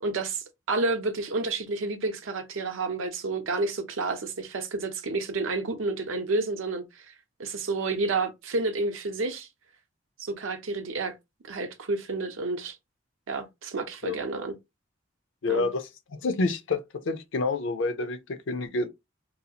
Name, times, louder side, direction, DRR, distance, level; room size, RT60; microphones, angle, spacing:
voice 1, 0.0-7.1 7.4-9.5 10.2-11.1 11.5-12.8 13.3-14.5 15.5-15.7, right 3 dB, 70° right, 0.6 m, -30 dB
voice 2, 15.4-16.8 17.1-18.9, left 3 dB, 65° left, 0.5 m, -28 dB
2.7 x 2.3 x 2.8 m
head